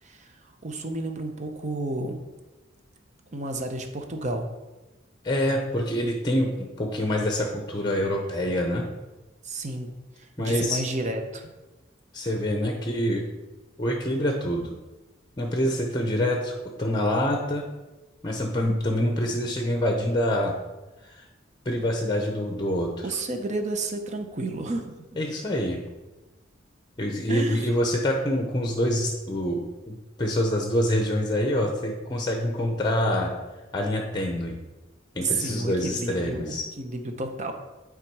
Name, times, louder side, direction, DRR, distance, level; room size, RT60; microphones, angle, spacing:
voice 1, 0.6-2.2 3.3-4.5 9.4-9.9 10.4-11.5 23.0-25.0 27.3-27.7 35.2-37.5, right 2 dB, 40° right, 5 dB, 0.7 m, -31 dB
voice 2, 5.2-8.8 10.4-10.8 12.1-13.2 13.8-14.7 15.4-17.6 18.2-20.5 21.0-21.2 21.7-23.1 25.2-25.8 27.0-33.3 33.7-34.6 35.2-36.7, left 1 dB, 20° left, 2 dB, 0.7 m, -26 dB
8.9 x 3.7 x 4.7 m, 1.1 s
head